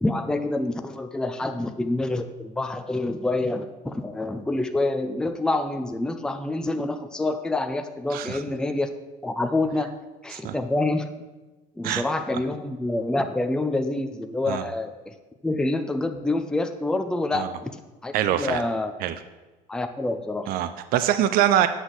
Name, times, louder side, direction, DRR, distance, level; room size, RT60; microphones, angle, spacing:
voice 1, 0.0-8.9 9.2-9.9 10.2-11.0 11.8-15.1 15.4-18.9 19.7-20.5, left 2 dB, 5° left, 7 dB, 0.5 m, -27 dB
voice 2, 18.1-18.6 19.0-19.1 20.5-21.7, right 11 dB, 55° right, 11 dB, 0.5 m, -23 dB
8.2 x 6.0 x 3.9 m, 1.2 s
supercardioid pair, 90°, 18 cm